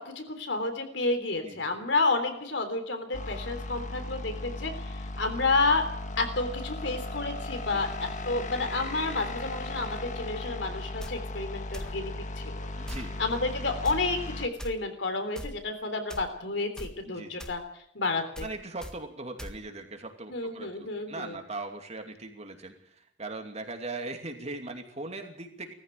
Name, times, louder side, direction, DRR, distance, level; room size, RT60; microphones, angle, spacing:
voice 1, 0.0-5.9 6.2-12.7 13.2-17.6 17.9-18.5 20.3-21.4, left 3 dB, 70° left, 7 dB, 3.5 m, -30 dB
sound 1, 3.1-14.5, left 2 dB, 45° left, 1.4 m, -37 dB
sound 2, 11.0-11.1 11.7-12.0 12.9-13.1 13.8-14.0 14.6-14.7 15.4-15.6 16.1-16.3 16.8-16.9 17.4-17.6 18.4-18.5 18.8-18.9 19.4-19.6, equal, 5° left, 1.7 m, -39 dB
voice 2, 12.8-13.1 17.1-17.4 18.4-25.7, right 2 dB, 35° right, 5 dB, 2.7 m, -40 dB
19.0 x 14.5 x 9.2 m, 0.71 s
head